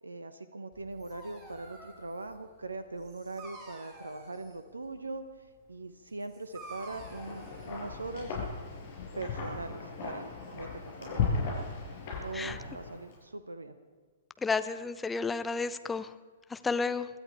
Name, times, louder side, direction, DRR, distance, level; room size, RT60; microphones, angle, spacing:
voice 1, 0.0-5.3 5.7-8.4 9.2-11.2 12.2-13.8, right 2 dB, 75° right, 11 dB, 1.0 m, -41 dB
Dog, 0.7-8.6, right 2 dB, 20° right, 3.7 m, -51 dB
Wind, 6.6-13.1, left 5 dB, 45° left, 6.0 m, -36 dB
voice 2, 14.4-16.1 16.5-17.1, left 4 dB, 10° left, 12 dB, 0.7 m, -31 dB
24.5 x 12.5 x 4.5 m, 1.5 s
figure-of-eight pair, 115°, 0 cm